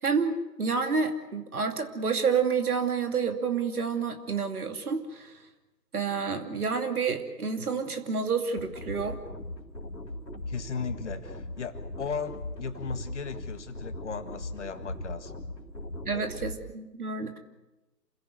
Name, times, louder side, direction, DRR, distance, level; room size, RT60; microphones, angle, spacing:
voice 1, 0.0-5.3 5.9-9.2 16.1-17.4, right 5 dB, 60° right, 6 dB, 2.8 m, -29 dB
sound 1, 8.6-16.6, left 1 dB, 90° left, 3.7 m, -39 dB
voice 2, 10.5-15.4 16.1-16.3, left 5 dB, 45° left, 9 dB, 1.9 m, -37 dB
28.0 x 16.5 x 7.9 m, 1.0 s
figure-of-eight pair, 145°, 49 cm